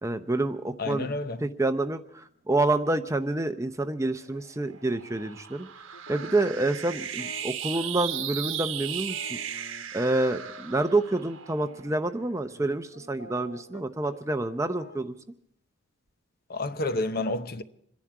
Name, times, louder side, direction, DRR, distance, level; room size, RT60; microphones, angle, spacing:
voice 1, 0.0-1.1 1.4-5.7 6.1-9.4 9.9-15.2, right 2 dB, 15° right, 0.6 m, -28 dB
voice 2, 0.8-1.5 16.5-17.6, left 2 dB, 50° left, 0.8 m, -30 dB
sound 1, 4.0-12.7, right 10 dB, 80° right, 1.1 m, -37 dB
sound 2, 5.9-11.2 11.7-11.9 12.4-13.8 14.1-14.2 14.5-15.1, left 2 dB, 85° left, 2.5 m, -47 dB
27.0 x 11.0 x 4.7 m
head